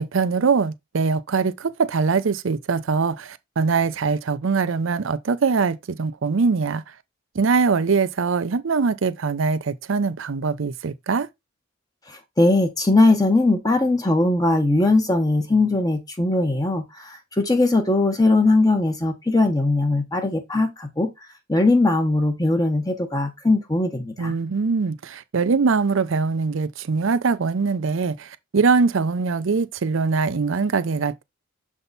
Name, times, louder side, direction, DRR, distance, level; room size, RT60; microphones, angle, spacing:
voice 1, 0.0-6.8 7.3-11.3 24.2-31.2, right 4 dB, 70° right, 0.5 m, -22 dB
voice 2, 12.1-21.1 21.5-24.3, left 2 dB, 15° left, 0.8 m, -20 dB
7.0 x 3.6 x 4.0 m
head